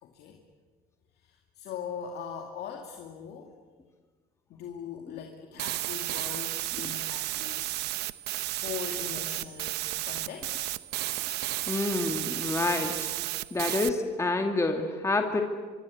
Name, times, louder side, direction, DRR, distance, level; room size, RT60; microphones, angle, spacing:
voice 1, 0.0-0.4 1.3-3.5 4.5-7.8 8.6-10.7, left 7 dB, 75° left, 2 dB, 2.5 m, -41 dB
sound 1, 5.6-13.9, right 16 dB, 85° right, 0.8 m, -33 dB
voice 2, 11.7-12.9 13.5-15.4, left 3 dB, 15° left, 4 dB, 2.2 m, -28 dB
25.0 x 24.0 x 8.5 m, 1.5 s
cardioid pair, 110°, 17 cm